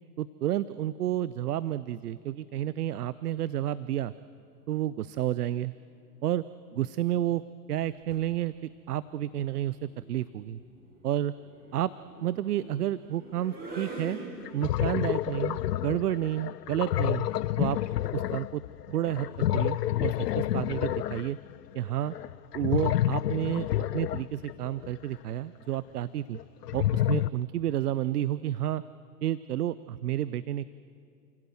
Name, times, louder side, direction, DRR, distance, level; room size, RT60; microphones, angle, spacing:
voice 1, 0.2-4.1 4.7-5.7 6.2-6.4 6.7-7.4 7.7-8.5 8.9-10.6 11.0-11.3 11.7-11.9 12.2-14.2 14.5-17.3 17.6-17.8 18.1-18.6 18.9-21.4 21.7-22.1 22.5-23.7 23.9-26.4 26.7-28.8 29.2-30.7, right 12 dB, 65° right, 17 dB, 0.7 m, -30 dB
sound 1, 7.9-8.3 9.7-14.9, right 2 dB, 20° right, 7.2 m, -45 dB
sound 2, 13.9-14.0 14.4-25.0 26.4-27.3, left 13 dB, 70° left, 0.6 m, -29 dB
30.0 x 17.0 x 7.7 m, 2.5 s
figure-of-eight pair, 105°, 49 cm